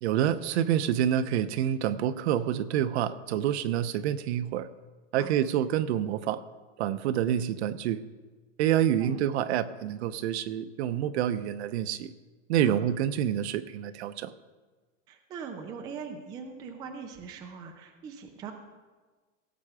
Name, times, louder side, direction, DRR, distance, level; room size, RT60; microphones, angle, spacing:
voice 1, 0.0-4.7 5.1-6.4 6.8-8.0 8.6-12.1 12.5-14.3, right 10 dB, 55° right, 14 dB, 0.7 m, -27 dB
voice 2, 15.1-18.5, right 6 dB, 10° right, 5 dB, 0.4 m, -41 dB
17.0 x 7.7 x 4.9 m, 1.3 s
supercardioid pair, 165°, 39 cm